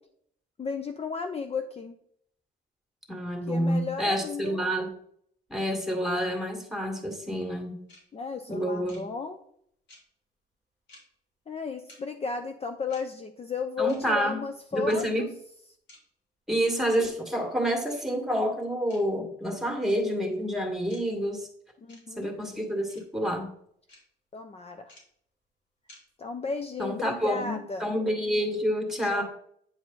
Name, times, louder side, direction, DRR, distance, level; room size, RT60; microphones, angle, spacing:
voice 1, 0.6-1.9 3.5-4.6 8.1-9.4 11.5-15.3 21.8-22.3 24.3-24.9 26.2-27.9 29.1-29.2, left 5 dB, 30° left, 7 dB, 0.7 m, -34 dB
voice 2, 3.1-4.9 5.5-7.8 8.5-9.0 13.8-14.4 14.7-15.3 16.5-21.5 22.2-23.5 26.8-29.2, equal, ahead, 2 dB, 2.1 m, -28 dB
sound 1, 7.9-8.0 8.9-9.0 9.9-10.0 10.9-11.0 11.9-12.0 12.9-13.0 13.9-14.0 14.9-15.0 15.9-16.0 16.9-17.0 17.9-18.0 18.9-19.0 19.9-20.0 20.9-21.0 21.9-22.0 22.9-23.0 23.9-24.0 24.9-25.0 25.9-26.0, left 2 dB, 65° left, 3.2 m, -52 dB
9.1 x 4.7 x 4.0 m, 0.66 s
cardioid pair, 90°, 20 cm